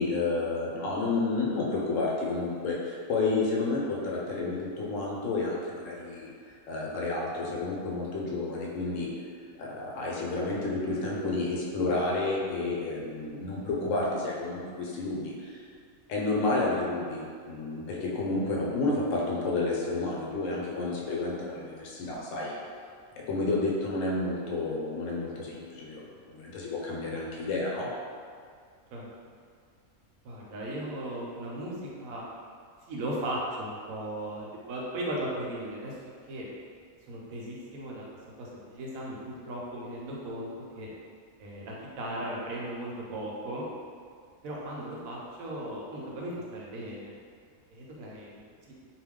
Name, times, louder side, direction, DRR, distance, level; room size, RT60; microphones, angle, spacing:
voice 1, 0.0-6.3 6.7-9.1 9.6-15.6 16.1-22.5 23.2-27.9, left 3 dB, 70° left, -4 dB, 0.9 m, -30 dB
voice 2, 30.2-32.2 32.9-35.9 36.3-36.4 37.1-38.0 38.4-40.5 40.7-40.9 41.4-43.7 44.4-47.1 47.7-48.7, right 1 dB, 80° right, -4 dB, 1.0 m, -37 dB
2.3 x 2.3 x 3.5 m, 2.2 s
omnidirectional pair, 1.5 m